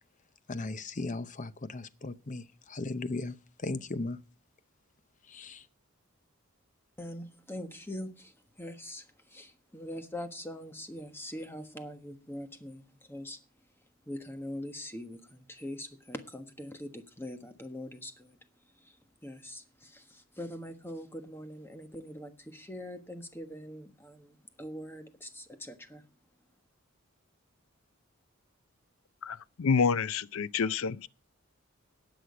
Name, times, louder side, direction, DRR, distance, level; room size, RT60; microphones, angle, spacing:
voice 1, 0.5-4.2 5.3-5.7, left 2 dB, 35° left, 0.7 m, -37 dB
voice 2, 7.0-26.1, left 1 dB, 10° left, 1.3 m, -43 dB
voice 3, 29.2-31.1, left 5 dB, 70° left, 0.5 m, -28 dB
18.0 x 6.3 x 5.0 m
head